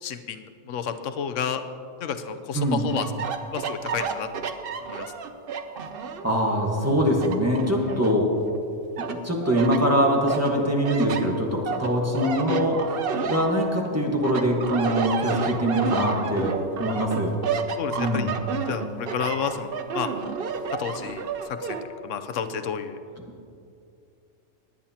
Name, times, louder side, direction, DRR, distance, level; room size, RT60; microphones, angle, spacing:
voice 1, 0.0-1.6 2.0-3.1 3.5-4.5 4.8-5.1 17.8-18.3 18.7-20.1 20.8-23.0, left 7 dB, 80° left, 9 dB, 1.0 m, -31 dB
voice 2, 2.5-2.9 6.2-8.3 9.0-13.0 13.3-17.3 18.0-18.3, equal, 10° right, -1 dB, 1.4 m, -23 dB
sound 1, 2.9-6.3 6.8-8.6 9.0-9.8 10.3-13.9 14.2-21.8, right 5 dB, 55° right, 0.8 m, -31 dB
19.0 x 10.0 x 2.8 m, 2.5 s
omnidirectional pair, 1.3 m